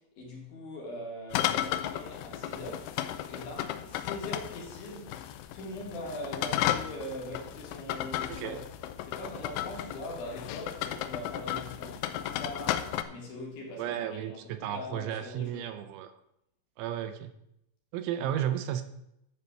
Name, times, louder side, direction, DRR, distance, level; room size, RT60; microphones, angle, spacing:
voice 1, 0.0-3.0 3.3-8.6 9.0-15.7 18.2-18.3, left 1 dB, 55° left, -2 dB, 3.6 m, -42 dB
sound 1, 1.3-13.0, left 12 dB, 90° left, 2.4 m, -34 dB
voice 2, 13.8-16.1 16.8-17.3 17.9-18.8, right 11 dB, 80° right, 9 dB, 2.9 m, -33 dB
12.0 x 4.6 x 6.9 m, 0.81 s
omnidirectional pair, 5.4 m